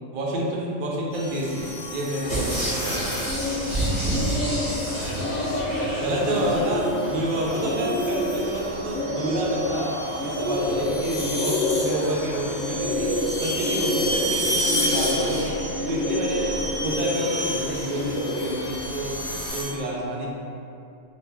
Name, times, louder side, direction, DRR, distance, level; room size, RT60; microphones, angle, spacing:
voice 1, 0.1-3.1 6.0-16.5 16.8-19.2 19.5-20.3, right 1 dB, 60° right, -3 dB, 0.5 m, -29 dB
sound 1, 1.1-3.5 4.9-5.3 6.1-19.6, equal, 55° left, 0.8 m, -32 dB
Bird, 2.2-19.5, left 1 dB, 20° left, 0.4 m, -28 dB
sound 2, 2.3-6.7 7.2-7.3, right 1 dB, 35° right, 0.9 m, -29 dB
voice 2, 3.6-6.5 7.4-7.8 10.6-10.9 14.0-14.2 16.5-16.7, left 2 dB, 80° left, -3 dB, 0.9 m, -37 dB
2.4 x 2.2 x 3.3 m, 2.6 s
omnidirectional pair, 1.3 m